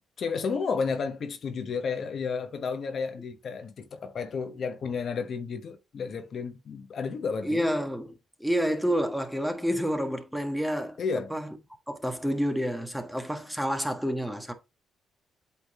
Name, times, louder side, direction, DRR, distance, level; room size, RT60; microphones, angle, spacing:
voice 1, 0.2-7.7 11.0-11.3, left 5 dB, 55° left, 1.2 m, -32 dB
voice 2, 7.4-8.1 8.4-11.0 11.3-11.6 11.9-14.5, equal, ahead, 1.5 m, -29 dB
8.3 x 3.8 x 3.7 m
cardioid pair, 90°, 0 cm